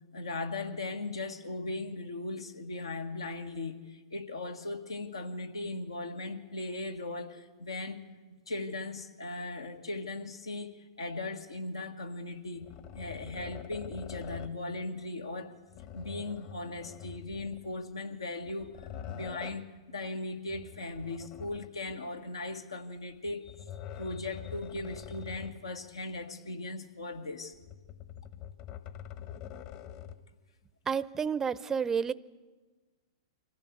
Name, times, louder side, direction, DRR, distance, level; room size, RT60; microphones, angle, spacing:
voice 1, 0.1-8.0 8.5-12.7 12.9-15.5 15.9-23.5 23.9-27.6, left 2 dB, 90° left, 4 dB, 1.7 m, -38 dB
sound 1, 12.6-14.7 15.7-17.8 18.4-19.7 20.5-22.0 23.2-25.7 26.1-26.2 27.5-30.3, left 9 dB, 45° left, 1.3 m, -45 dB
voice 2, 30.9-32.1, right 6 dB, 20° right, 19 dB, 0.6 m, -30 dB
24.0 x 15.5 x 8.1 m, 1.3 s
hypercardioid pair, 110°, 3 cm